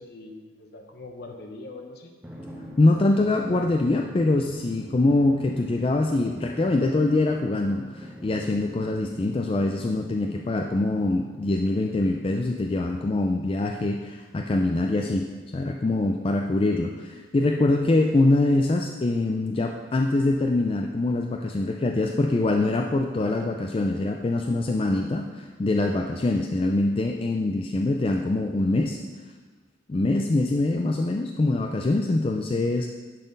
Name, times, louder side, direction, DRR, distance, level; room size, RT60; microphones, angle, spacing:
voice 1, 0.0-2.1, left 2 dB, 55° left, 4 dB, 0.9 m, -42 dB
Drum, 2.2-13.3, equal, 5° right, 0.8 m, -44 dB
voice 2, 2.8-29.0 29.9-32.9, left 2 dB, 30° left, 3 dB, 0.4 m, -24 dB
10.5 x 4.1 x 5.3 m, 1.4 s
head